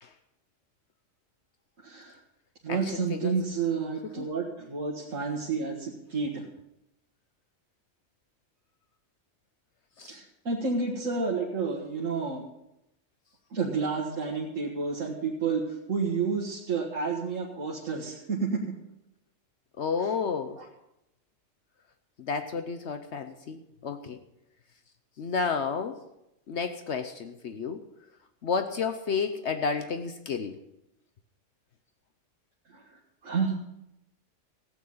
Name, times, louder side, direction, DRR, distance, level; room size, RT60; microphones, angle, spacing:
voice 1, 1.8-2.2 2.6-6.5 10.1-12.4 13.5-18.6 20.6-20.7 32.7-33.5, right 5 dB, 90° right, -3 dB, 2.1 m, -30 dB
voice 2, 2.7-3.4 4.2-4.3 10.0-10.2 19.8-20.6 22.2-24.2 25.2-26.0 26.5-27.8 28.4-30.6, left 5 dB, 65° left, 8 dB, 1.1 m, -31 dB
15.5 x 9.2 x 5.5 m, 0.86 s
omnidirectional pair, 1.3 m